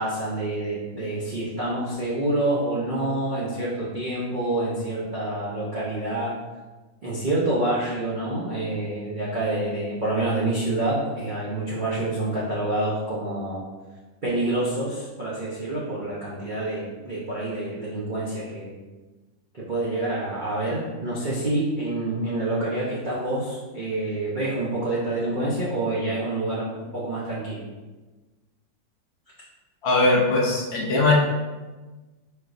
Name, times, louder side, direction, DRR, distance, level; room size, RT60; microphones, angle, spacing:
voice 1, 0.0-6.3 7.0-13.6 14.2-18.8 19.5-27.6, right 2 dB, 80° right, -7 dB, 0.4 m, -27 dB
voice 2, 29.8-31.1, left 2 dB, 70° left, -3 dB, 0.6 m, -20 dB
4.5 x 4.3 x 2.5 m, 1.2 s
omnidirectional pair, 2.1 m